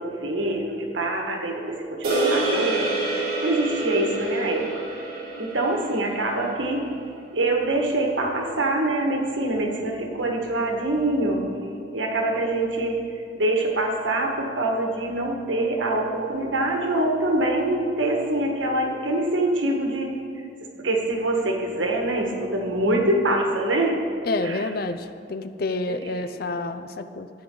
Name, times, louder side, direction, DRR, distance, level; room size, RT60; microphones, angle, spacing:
voice 1, 0.0-3.0 3.4-4.7 5.4-6.8 7.3-11.4 11.9-13.0 13.3-20.2 20.8-24.0 24.4-24.7 25.9-26.3, right 2 dB, 80° right, 1 dB, 1.5 m, -24 dB
sound 1, 2.0-6.5, right 2 dB, 50° right, 2.8 m, -27 dB
voice 2, 24.3-27.3, left 2 dB, 50° left, 10 dB, 0.5 m, -29 dB
14.5 x 9.4 x 3.9 m, 2.3 s
head